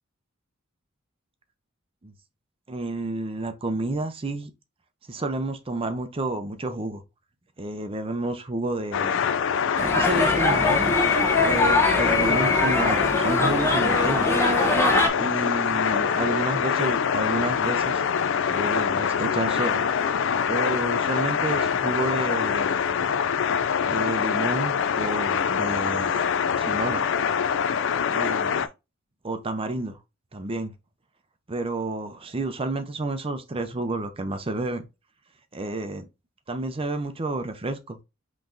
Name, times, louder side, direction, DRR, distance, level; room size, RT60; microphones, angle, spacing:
voice 1, 2.7-4.5 5.1-7.0 7.6-9.2 9.8-10.8 11.4-14.4 15.2-18.0 18.5-19.9 20.5-22.8 23.8-26.2 26.6-27.0 28.1-28.7 29.2-30.0 30.3-30.7 31.5-34.8 35.5-36.0 36.5-38.0, right 2 dB, 25° right, 0.6 m, -30 dB
sound 1, 8.9-28.7, left 7 dB, 65° left, 0.4 m, -24 dB
sound 2, 9.8-15.1, left 2 dB, 10° left, 0.8 m, -23 dB
5.6 x 3.1 x 2.6 m
head